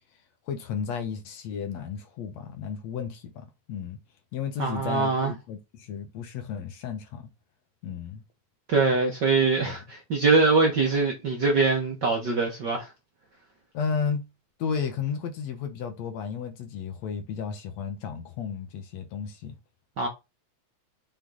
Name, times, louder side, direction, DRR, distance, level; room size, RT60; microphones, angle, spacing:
voice 1, 0.5-4.0 4.3-7.3 7.8-8.2 9.6-9.8 13.7-14.3 14.6-19.5, left 6 dB, 70° left, 2.2 m, -33 dB
voice 2, 4.6-5.3 8.7-12.9 20.0-20.1, right 4 dB, 50° right, 1.5 m, -23 dB
6.7 x 3.9 x 3.9 m
omnidirectional pair, 3.3 m